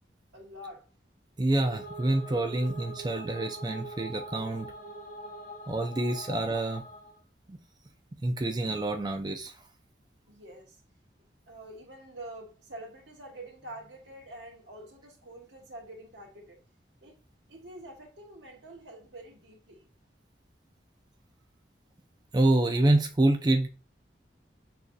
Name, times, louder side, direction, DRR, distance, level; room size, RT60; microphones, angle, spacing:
voice 1, 0.3-0.9 10.3-10.8 11.5-16.6 17.0-17.2 17.5-19.9, right 1 dB, 85° right, 1.5 m, -46 dB
sound 1, 1.4-7.2, right 1 dB, 45° left, 0.7 m, -43 dB
voice 2, 1.4-4.7 5.7-6.8 7.5-7.6 8.2-9.5 22.3-23.7, right 2 dB, 25° right, 0.4 m, -27 dB
6.3 x 2.8 x 2.2 m
head